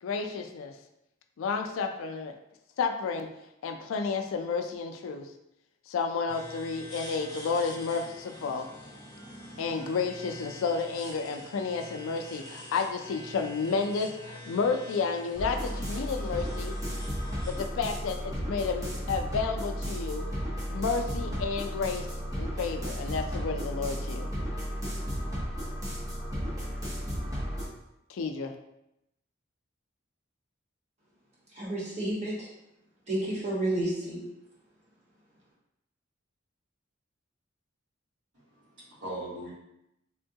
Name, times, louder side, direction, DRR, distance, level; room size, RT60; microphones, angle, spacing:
voice 1, 0.0-0.7 1.4-2.3 2.8-3.3 3.6-5.3 5.9-8.7 9.6-16.8 17.4-20.2 20.7-22.1 22.4-24.3 28.1-28.5, left 5 dB, 85° left, 6 dB, 0.3 m, -31 dB
sound 1, 6.3-17.6, left 1 dB, 20° left, 0.8 m, -46 dB
sound 2, 15.4-27.7, equal, 20° right, 0.8 m, -34 dB
voice 2, 31.6-32.5 33.1-34.2, right 1 dB, 35° right, -6 dB, 1.0 m, -30 dB
voice 3, 38.3-39.5, right 1 dB, 60° right, -10 dB, 1.2 m, -40 dB
3.5 x 2.2 x 2.7 m, 0.85 s
head